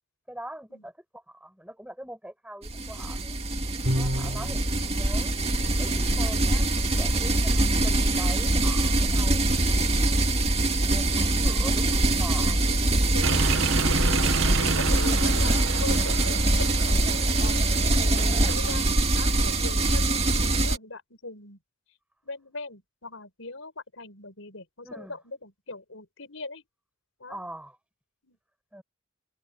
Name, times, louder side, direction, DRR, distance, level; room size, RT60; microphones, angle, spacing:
voice 1, 0.3-3.4 3.9-5.4 5.8-9.7 10.6-12.6 18.3-19.0 24.8-25.2 27.3-27.8 28.7-28.8, right 1 dB, 5° right, 7.9 m, -43 dB
sound 1, 2.6-20.8, right 2 dB, 30° right, 2.2 m, -23 dB
Bowed string instrument, 3.9-4.7, equal, 60° right, 3.4 m, -28 dB
voice 2, 12.5-13.5 13.8-14.3 14.6-17.0 17.3-17.6 18.0-18.8 19.1-21.6 22.2-26.6 27.2-27.4 28.2-28.4, left 3 dB, 80° left, 5.3 m, -41 dB
sound 2, 13.2-18.9, right 5 dB, 85° right, 1.3 m, -31 dB
head